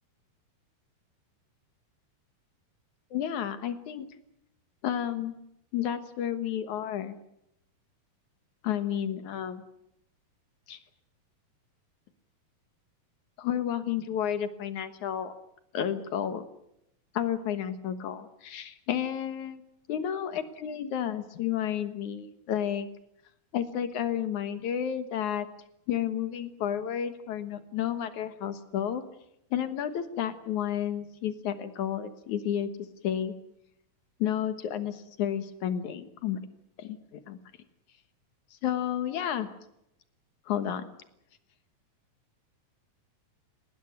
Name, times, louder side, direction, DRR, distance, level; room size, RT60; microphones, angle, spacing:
voice 1, 3.1-4.1 4.8-5.3 5.7-7.2 8.6-9.6 10.7-10.8 13.4-15.3 15.7-16.4 17.1-19.6 19.9-22.9 23.5-25.5 25.9-29.0 29.5-32.7 33.0-33.3 34.2-36.4 36.8-37.0 37.3-37.4 38.6-39.5 40.5-40.9, left 9 dB, 60° left, 11 dB, 2.4 m, -31 dB
19.5 x 18.5 x 9.3 m, 0.81 s
omnidirectional pair, 4.3 m